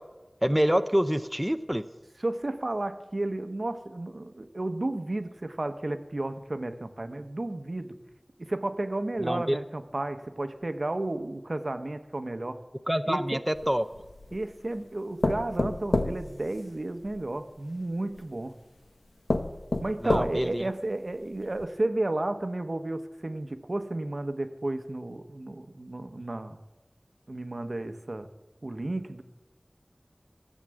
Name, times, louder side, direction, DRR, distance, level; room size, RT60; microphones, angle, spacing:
voice 1, 0.4-1.8 9.2-9.6 12.9-13.8 20.0-20.7, equal, 10° right, 9 dB, 0.5 m, -26 dB
voice 2, 2.2-7.9 8.4-12.6 13.1-13.4 14.3-18.5 19.8-26.6 27.3-28.3 28.6-29.2, right 2 dB, 65° right, 9 dB, 0.9 m, -32 dB
sound 1, 13.6-14.4 15.2-17.2 18.2-18.3 18.8-18.9 19.3-20.6 21.1-21.2 21.6-21.7, left 2 dB, 85° left, 0.9 m, -29 dB
14.0 x 7.4 x 7.7 m, 1.1 s
wide cardioid pair, 50°, 0 cm